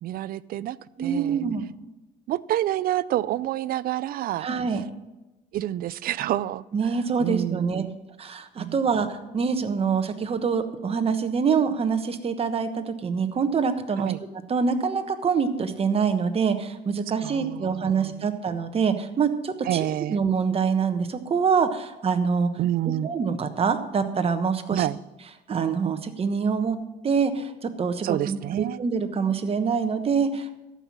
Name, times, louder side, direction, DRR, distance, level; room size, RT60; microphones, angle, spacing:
voice 1, 0.0-1.4 2.3-4.5 5.5-6.9 7.2-8.0 8.6-8.8 14.0-14.2 17.2-18.3 19.6-20.2 22.6-23.1 24.7-25.0 28.0-28.8, right 13 dB, 60° right, 19 dB, 0.4 m, -28 dB
voice 2, 1.0-1.7 4.4-4.8 6.7-7.8 8.2-14.1 14.5-22.5 23.0-24.9 25.5-26.8 27.0-30.6, right 6 dB, 35° right, 8 dB, 1.2 m, -25 dB
13.5 x 5.8 x 7.3 m, 1.0 s
cardioid pair, 110°, 17 cm